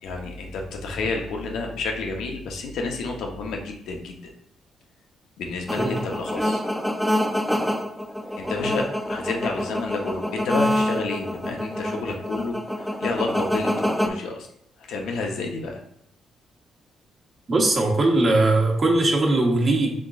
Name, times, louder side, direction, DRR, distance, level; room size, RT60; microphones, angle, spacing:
voice 1, 0.0-4.2 5.4-6.6 8.4-14.5 14.8-15.8, left 3 dB, 80° left, 2 dB, 0.8 m, -30 dB
sound 1, 5.7-14.1, left 1 dB, 5° left, 0.5 m, -26 dB
voice 2, 17.5-19.9, right 2 dB, 35° right, -1 dB, 1.2 m, -20 dB
5.7 x 3.8 x 2.4 m, 0.73 s
cardioid pair, 90°, 0 cm